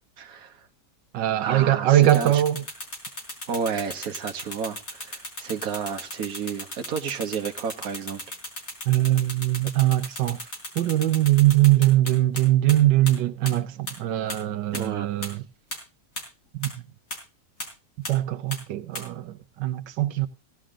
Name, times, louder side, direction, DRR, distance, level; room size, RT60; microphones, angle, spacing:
voice 1, 0.2-0.7 1.4-2.4 3.5-8.2 14.7-15.3, right 6 dB, 55° right, 1.7 m, -31 dB
voice 2, 1.1-2.6 8.9-10.4 10.8-15.4 16.6-16.7 18.1-20.3, right 14 dB, 90° right, 1.5 m, -21 dB
sound 1, 2.0-12.4 12.7-12.8 13.1-13.2 13.5-13.6 13.9-14.0 14.3-14.4 14.7-14.8 15.2-15.3 15.7-15.8 16.2-16.3 16.6-16.7 17.1-17.2 17.6-17.7 18.0-18.1 18.5-18.6 18.9-19.0, left 1 dB, 50° left, 4.6 m, -35 dB
17.0 x 11.0 x 3.7 m
omnidirectional pair, 1.9 m